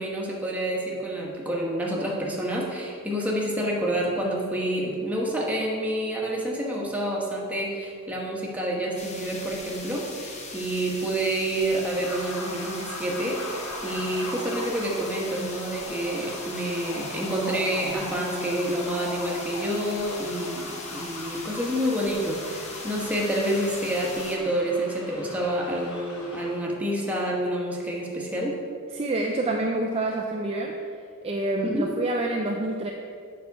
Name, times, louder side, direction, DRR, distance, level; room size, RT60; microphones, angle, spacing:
voice 1, 0.0-28.6 31.6-31.9, right 1 dB, 5° right, -3 dB, 1.2 m, -28 dB
sound 1, 9.0-24.4, left 3 dB, 30° left, 0.8 m, -40 dB
sound 2, 11.8-26.6, left 1 dB, 80° left, 1.1 m, -39 dB
voice 2, 28.9-30.8 31.2-32.9, right 2 dB, 25° right, 1 dB, 0.4 m, -27 dB
7.5 x 5.8 x 4.7 m, 2.3 s
head